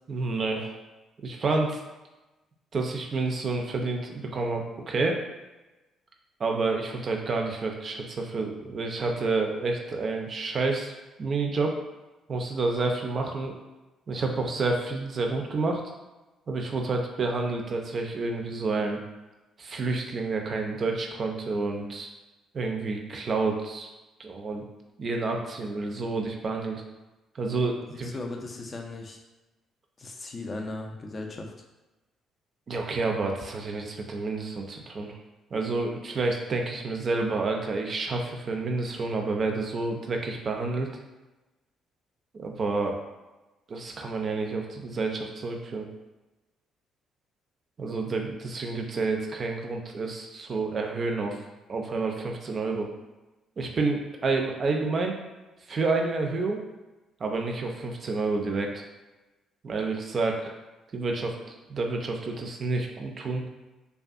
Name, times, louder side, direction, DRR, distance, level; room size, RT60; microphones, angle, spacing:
voice 1, 0.1-0.7 1.2-1.8 2.7-5.2 6.4-11.7 12.3-13.6 14.1-15.8 16.5-19.0 19.6-22.1 22.5-23.9 24.2-24.6 25.0-26.8 27.3-28.1 32.7-35.2 35.5-40.9 42.3-43.0 43.7-45.9 47.8-51.4 51.7-52.9 53.6-55.2 55.7-56.6 57.2-58.8 59.6-60.5 60.9-63.4, right 3 dB, 45° right, 2 dB, 0.4 m, -29 dB
voice 2, 27.8-29.2 30.0-31.5, left 2 dB, 35° left, 2 dB, 0.4 m, -37 dB
2.5 x 2.2 x 2.4 m, 1.1 s
figure-of-eight pair, 45°, 0 cm